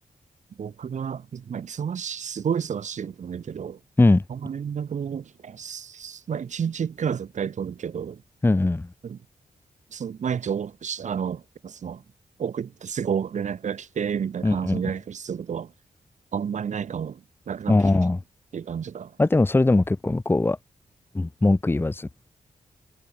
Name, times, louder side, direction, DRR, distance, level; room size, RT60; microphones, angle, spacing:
voice 1, 0.6-3.8 4.3-8.2 9.0-9.2 9.9-12.0 12.4-15.7 16.3-17.2 17.5-17.8 18.5-19.1, right 7 dB, 65° right, 1.9 m, -30 dB
voice 2, 8.4-8.9 14.4-14.9 17.7-18.2 19.2-20.6 21.1-22.1, left 2 dB, 15° left, 1.1 m, -20 dB
wide cardioid pair, 105°, 14 cm